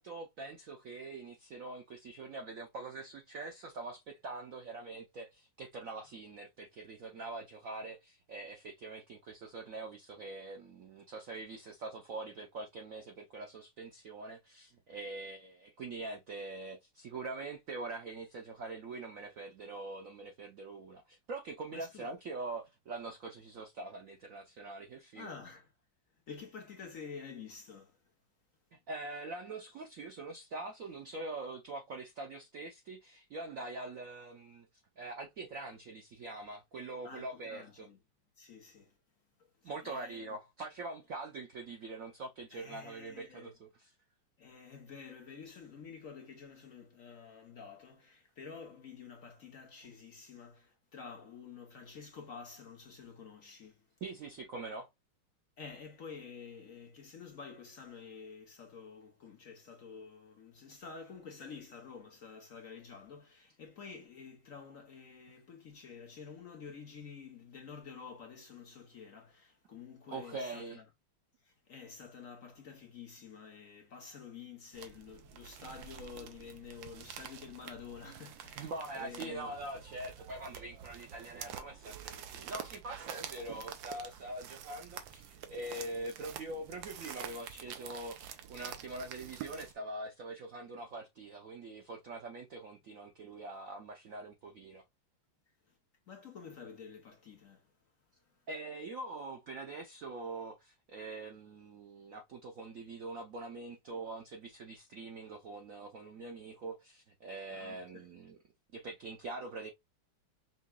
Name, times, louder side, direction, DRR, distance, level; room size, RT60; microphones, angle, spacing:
voice 1, 0.0-25.3 28.9-34.7 35.0-37.9 39.6-43.9 49.8-49.9 54.0-54.9 70.1-70.8 78.6-94.8 98.5-108.4 108.7-109.7, right 2 dB, 90° right, 0.7 m, -44 dB
voice 2, 21.7-22.1 25.1-25.7 26.3-28.0 37.0-38.0 38.4-39.0 39.6-40.4 42.5-43.5 44.4-53.8 55.6-70.8 71.4-79.5 95.7-95.8 96.1-97.7 98.2-98.4 107.5-108.1, left 6 dB, 55° left, 1.0 m, -50 dB
sound 1, 74.7-89.7, right 9 dB, 70° right, 1.3 m, -48 dB
5.6 x 2.9 x 2.2 m
omnidirectional pair, 2.3 m